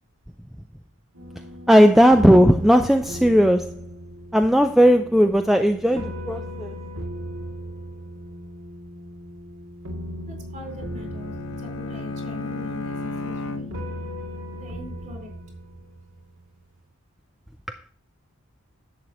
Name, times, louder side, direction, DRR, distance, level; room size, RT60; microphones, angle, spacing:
sound 1, 1.1-16.6, equal, 60° right, 2.4 m, -38 dB
voice 1, 1.7-3.7 4.3-6.7, equal, ahead, 0.4 m, -16 dB
voice 2, 10.3-13.8 14.5-15.3, left 2 dB, 35° right, 4.3 m, -42 dB
Bowed string instrument, 10.6-14.2, left 2 dB, 60° left, 1.0 m, -34 dB
11.0 x 8.1 x 3.0 m
head